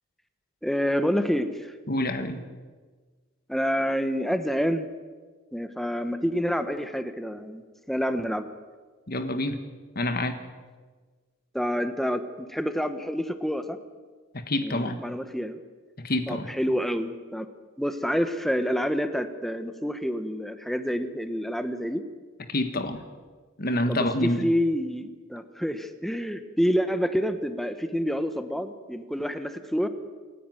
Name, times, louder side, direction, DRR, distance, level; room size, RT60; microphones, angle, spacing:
voice 1, 0.6-1.8 3.5-4.9 5.5-8.5 11.5-13.8 14.6-15.6 16.3-17.5 17.8-22.0 23.9-29.9, equal, ahead, 9 dB, 1.2 m, -28 dB
voice 2, 1.9-2.4 9.1-9.6 9.9-10.4 14.3-15.0 16.0-16.5 22.5-23.0 23.6-24.5, left 1 dB, 45° left, 8 dB, 1.5 m, -27 dB
27.5 x 11.0 x 9.2 m, 1.4 s
head